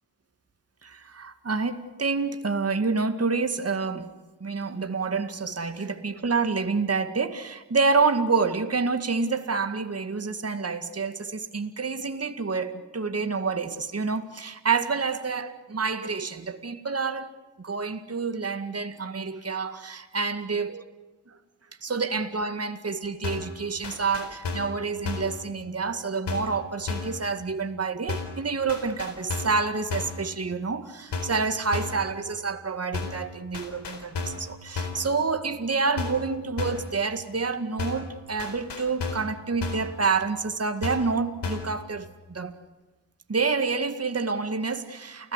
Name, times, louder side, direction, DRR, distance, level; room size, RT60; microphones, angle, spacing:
voice 1, 0.8-4.1 4.4-17.3 17.6-20.8 21.8-42.6 43.3-45.3, right 4 dB, 35° right, 2.0 m, -28 dB
sound 1, 23.2-23.6 23.8-24.8 25.1-25.4 26.3-26.6 26.9-27.2 28.1-28.4 28.7-29.6 29.9-30.2 31.1-31.4 31.7-32.0 32.9-33.3 33.5-34.5 34.8-35.1 36.0-36.3 36.6-36.9 37.8-38.1 38.4-39.3 39.6-39.9 40.8-41.1 41.4-41.8, left 4 dB, 70° left, 4.2 m, -32 dB
29.5 x 16.5 x 8.3 m
supercardioid pair, 45°, 42 cm